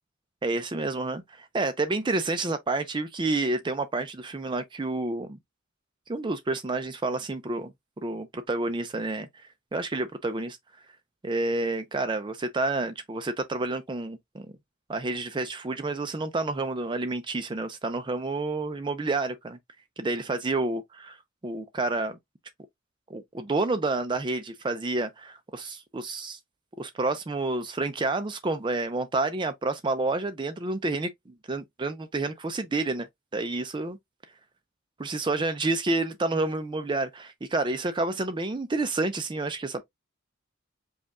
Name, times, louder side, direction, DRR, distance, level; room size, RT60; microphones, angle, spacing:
voice 1, 0.4-5.4 6.1-7.7 8.0-10.6 11.2-14.5 14.9-19.6 20.0-21.2 21.4-22.2 23.1-26.4 26.8-31.1 31.5-33.1 33.3-34.0 35.0-39.8, right 2 dB, 25° right, 0.5 m, -29 dB
5.2 x 2.4 x 3.6 m
head